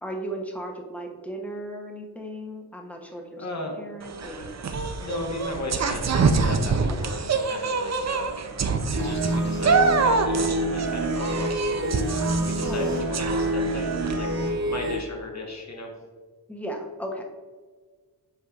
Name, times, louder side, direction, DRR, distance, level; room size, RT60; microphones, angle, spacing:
voice 1, 0.0-3.4 3.8-4.5 6.9-7.1 12.6-12.9 16.5-17.2, right 1 dB, 5° left, 1 dB, 0.7 m, -36 dB
voice 2, 3.4-3.8 5.0-8.4 8.9-15.9, left 2 dB, 40° left, 1 dB, 1.2 m, -36 dB
sound 1, 4.0-14.2, right 4 dB, 45° right, 0.5 m, -26 dB
sound 2, 8.9-15.0, right 1 dB, 65° right, 1.4 m, -27 dB
8.0 x 5.4 x 2.4 m, 1.5 s
wide cardioid pair, 150°, 40 cm